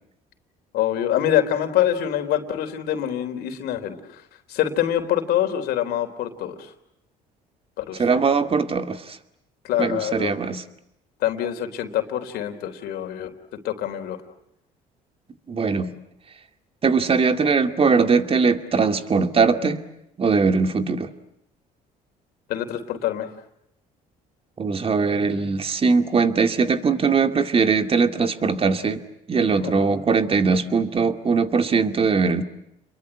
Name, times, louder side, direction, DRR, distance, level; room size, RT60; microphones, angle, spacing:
voice 1, 0.7-4.2 4.5-6.7 7.8-8.0 9.6-10.3 11.2-14.2 22.5-23.3 29.6-30.0, left 11 dB, 80° left, 7 dB, 3.8 m, -25 dB
voice 2, 8.0-9.2 9.8-10.6 15.5-15.9 16.8-19.8 20.2-21.1 24.6-29.0 29.3-32.4, right 5 dB, 35° right, 7 dB, 2.4 m, -21 dB
29.5 x 22.5 x 8.9 m, 0.80 s
supercardioid pair, 80°, 16 cm